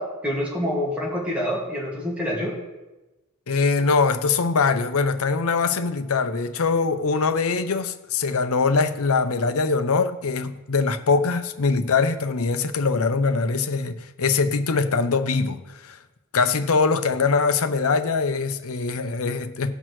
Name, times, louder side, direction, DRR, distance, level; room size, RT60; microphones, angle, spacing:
voice 1, 0.0-2.5, equal, 5° right, 2.1 m, -27 dB
voice 2, 3.5-16.0 16.3-19.7, left 4 dB, 75° left, 0.7 m, -22 dB
18.0 x 6.1 x 3.1 m
head